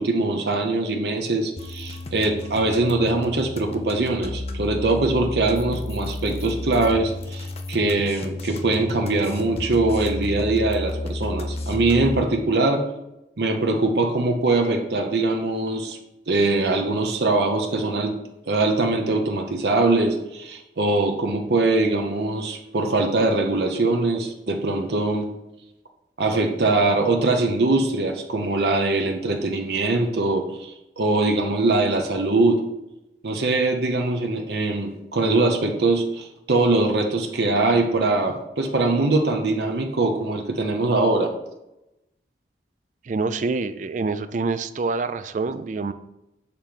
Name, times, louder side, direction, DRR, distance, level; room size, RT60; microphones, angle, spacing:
voice 1, 0.0-12.8 13.4-16.0 16.3-18.2 18.5-25.3 26.2-32.6 33.2-41.3, right 2 dB, 65° right, 3 dB, 0.7 m, -22 dB
sound 1, 1.6-12.2, left 2 dB, 35° left, 0.5 m, -32 dB
voice 2, 43.0-45.9, right 4 dB, 40° right, 12 dB, 0.3 m, -26 dB
6.7 x 3.0 x 5.2 m, 0.90 s
head